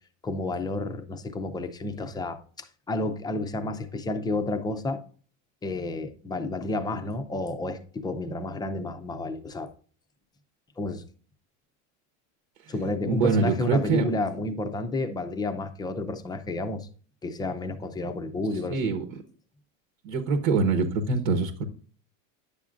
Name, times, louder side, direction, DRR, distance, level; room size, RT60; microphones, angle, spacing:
voice 1, 0.2-5.0 5.6-9.7 10.8-11.0 12.7-16.9 17.2-18.9, left 2 dB, 10° left, 0.4 m, -31 dB
voice 2, 13.1-14.1 18.7-19.2 20.0-21.6, right 4 dB, 70° right, 1.2 m, -25 dB
10.0 x 7.0 x 2.5 m
supercardioid pair, 145°, 39 cm